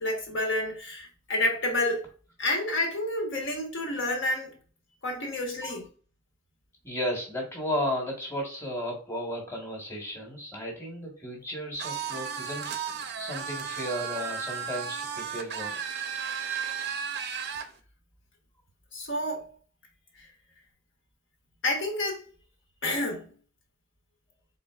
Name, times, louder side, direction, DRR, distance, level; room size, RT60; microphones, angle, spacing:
voice 1, 0.0-2.1 2.4-4.6 5.0-5.9 18.9-19.5 20.1-20.3 21.6-22.3 22.8-23.3, left 1 dB, 65° left, 1.3 m, -29 dB
voice 2, 6.8-12.7 13.2-15.8, equal, 15° left, 1.3 m, -34 dB
sound 1, 11.8-17.7, right 7 dB, 55° right, 0.5 m, -34 dB
3.9 x 3.8 x 2.4 m
head